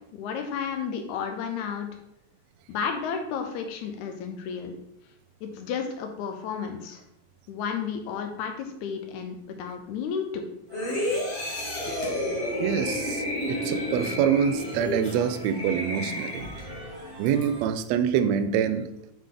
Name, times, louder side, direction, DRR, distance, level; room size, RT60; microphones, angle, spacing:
voice 1, 0.1-1.9 2.7-4.8 5.4-7.0 7.5-10.5, left 6 dB, 90° left, 5 dB, 2.1 m, -32 dB
sound 1, 10.7-16.8 17.3-17.4, left 1 dB, 45° left, 0.9 m, -31 dB
sound 2, 10.7-17.7, equal, 40° right, 1.2 m, -42 dB
voice 2, 12.6-16.6 17.2-18.9, right 8 dB, 80° right, 10 dB, 1.6 m, -26 dB
8.2 x 3.8 x 3.7 m, 0.82 s
omnidirectional pair, 3.3 m